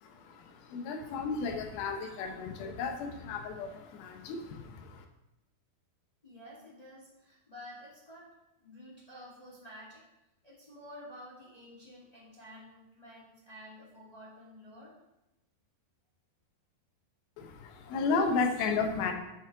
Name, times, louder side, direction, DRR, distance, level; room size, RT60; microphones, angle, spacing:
voice 1, 0.0-5.1 17.4-19.1, left 4 dB, 80° left, 4 dB, 2.8 m, -33 dB
voice 2, 6.2-8.3 8.6-10.0 10.4-15.0, equal, 15° left, -6 dB, 1.2 m, -50 dB
7.4 x 7.1 x 4.7 m, 0.92 s
omnidirectional pair, 4.3 m